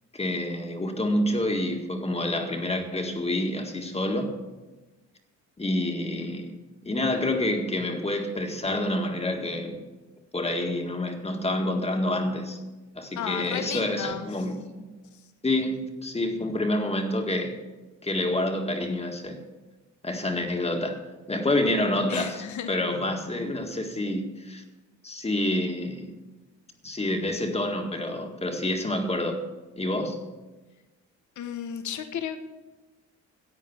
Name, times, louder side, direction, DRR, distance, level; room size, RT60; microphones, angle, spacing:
voice 1, 0.1-4.3 5.6-6.6 6.8-9.8 10.3-12.6 13.0-14.8 15.4-17.6 18.0-19.4 20.0-21.0 21.3-22.4 22.7-24.6 25.0-26.1 26.8-29.4 29.8-30.2, left 1 dB, 20° left, 4 dB, 1.8 m, -28 dB
voice 2, 13.2-14.3 22.1-22.8 31.4-32.4, left 8 dB, 75° left, 8 dB, 1.1 m, -33 dB
11.0 x 8.3 x 7.1 m, 1.2 s
cardioid pair, 90°, 30 cm